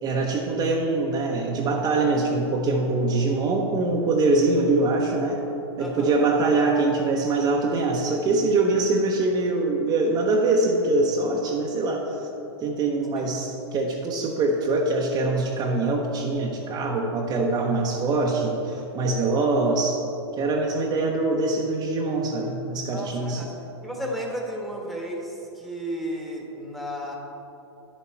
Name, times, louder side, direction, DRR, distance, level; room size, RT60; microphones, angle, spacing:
voice 1, 0.0-5.4 5.8-12.3 12.6-20.0 20.4-23.4, right 3 dB, 30° right, -1 dB, 0.9 m, -23 dB
voice 2, 5.8-6.3 13.2-13.3 22.9-23.5 23.8-27.2, equal, ahead, -2 dB, 1.3 m, -33 dB
9.7 x 7.2 x 4.5 m, 3.0 s
hypercardioid pair, 130°, 15 cm